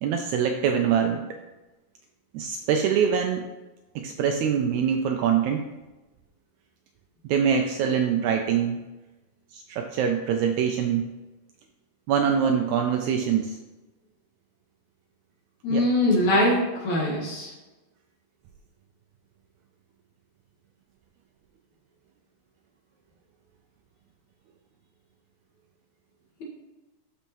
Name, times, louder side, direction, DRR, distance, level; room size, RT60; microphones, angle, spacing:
voice 1, 0.0-1.3 2.3-3.5 3.9-5.7 7.3-8.8 9.5-11.1 12.1-13.6 15.7-15.9, right 7 dB, 80° right, 4 dB, 1.7 m, -24 dB
voice 2, 15.6-17.5, left 1 dB, 65° left, -3 dB, 3.0 m, -22 dB
12.0 x 4.5 x 3.0 m, 1.1 s
omnidirectional pair, 3.7 m